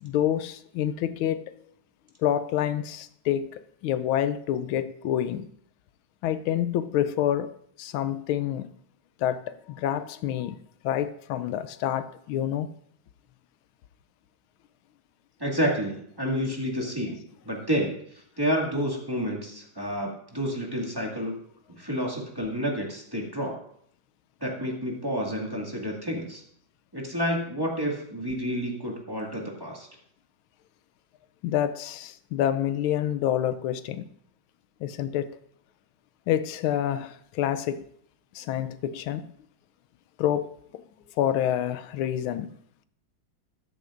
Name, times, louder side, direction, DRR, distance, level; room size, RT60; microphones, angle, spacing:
voice 1, 0.0-1.4 2.2-5.5 6.2-7.5 7.8-8.7 9.2-10.6 10.8-12.7 31.4-34.1 34.8-35.3 36.3-37.8 38.3-39.3 40.2-40.8 41.2-42.6, left 11 dB, 85° left, 1.4 m, -27 dB
voice 2, 15.4-21.3 21.7-23.6 24.4-26.4 26.9-29.9, equal, 10° right, 1.9 m, -30 dB
13.5 x 12.0 x 2.5 m
omnidirectional pair, 2.2 m